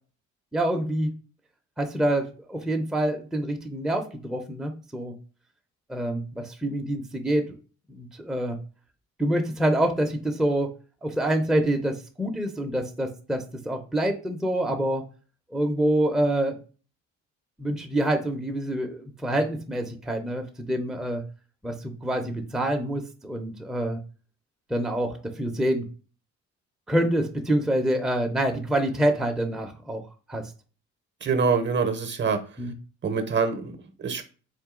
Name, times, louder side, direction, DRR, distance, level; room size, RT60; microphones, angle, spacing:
voice 1, 0.5-1.1 1.8-5.1 5.9-7.4 7.9-8.6 9.2-10.7 11.0-15.1 15.5-16.6 17.6-21.2 21.6-24.0 24.7-25.8 26.9-30.0 30.3-30.4 32.6-32.7, right 1 dB, ahead, 3 dB, 0.5 m, -26 dB
voice 2, 31.2-32.4 33.0-34.2, right 5 dB, 40° right, 8 dB, 0.7 m, -25 dB
3.8 x 2.6 x 3.6 m, 0.36 s
cardioid pair, 90°, 30 cm